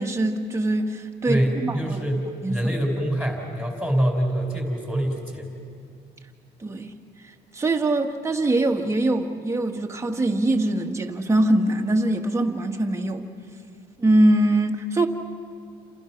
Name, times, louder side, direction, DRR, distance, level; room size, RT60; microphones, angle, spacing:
voice 1, 0.0-2.0 2.4-2.7 6.6-6.9 7.5-13.2 14.0-15.1, right 1 dB, 15° right, 3 dB, 1.7 m, -23 dB
voice 2, 1.3-5.5, right 1 dB, 5° left, 0 dB, 4.5 m, -25 dB
29.0 x 27.5 x 6.0 m, 2.3 s
cardioid pair, 110°, 17 cm